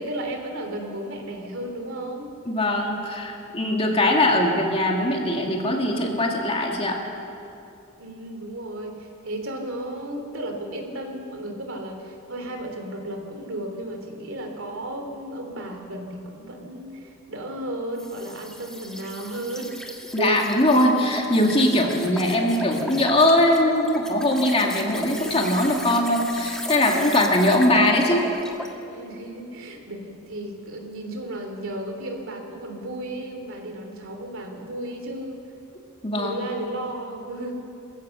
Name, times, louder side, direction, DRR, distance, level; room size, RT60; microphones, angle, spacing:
voice 1, 0.0-2.3 8.0-19.8 20.2-20.4 28.8-35.4 36.1-37.5, right 1 dB, 65° right, 3 dB, 3.1 m, -34 dB
voice 2, 2.5-7.0 20.1-28.2 36.0-36.3, left 1 dB, 30° left, 0 dB, 2.4 m, -21 dB
sound 1, 18.0-28.8, equal, 5° left, 1.6 m, -36 dB
23.5 x 15.5 x 7.1 m, 2.7 s
head